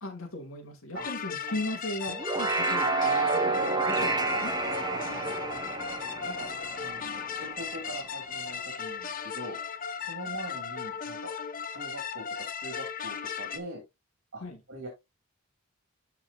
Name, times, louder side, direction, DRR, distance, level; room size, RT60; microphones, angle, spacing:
voice 1, 0.0-4.5 14.4-14.6, left 1 dB, 80° left, 2.7 m, -38 dB
sound 1, 1.0-13.6, left 6 dB, 40° left, 1.1 m, -37 dB
sound 2, 2.1-7.6, right 3 dB, 20° right, 1.3 m, -29 dB
voice 2, 4.9-5.8 6.2-6.5 6.8-9.6 10.0-11.3 11.6-12.3 12.5-13.8 14.3-14.4 14.7-14.9, right 1 dB, 60° right, 2.9 m, -42 dB
13.0 x 4.8 x 2.7 m
head